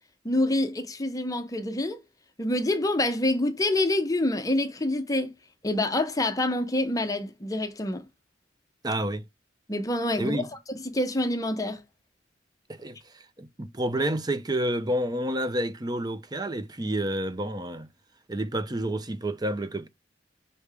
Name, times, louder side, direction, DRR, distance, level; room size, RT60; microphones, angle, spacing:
voice 1, 0.2-2.0 2.4-5.3 5.6-8.1 9.7-10.5 10.7-11.8, left 1 dB, 20° left, 0.8 m, -26 dB
voice 2, 8.8-9.2 10.2-10.5 12.7-17.9 18.3-19.9, right 1 dB, 20° right, 0.6 m, -29 dB
5.6 x 3.5 x 4.8 m
head